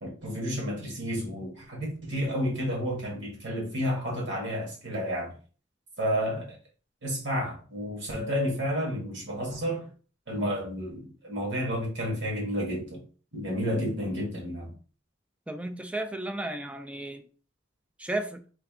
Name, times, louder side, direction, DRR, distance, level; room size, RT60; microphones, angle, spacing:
voice 1, 0.0-5.3 6.0-6.5 7.0-9.9 10.3-13.0 13.3-14.7, equal, 65° right, 1.6 m, -31 dB
voice 2, 15.5-17.2 18.0-18.4, right 1 dB, 5° right, 0.3 m, -33 dB
3.4 x 2.5 x 3.5 m
head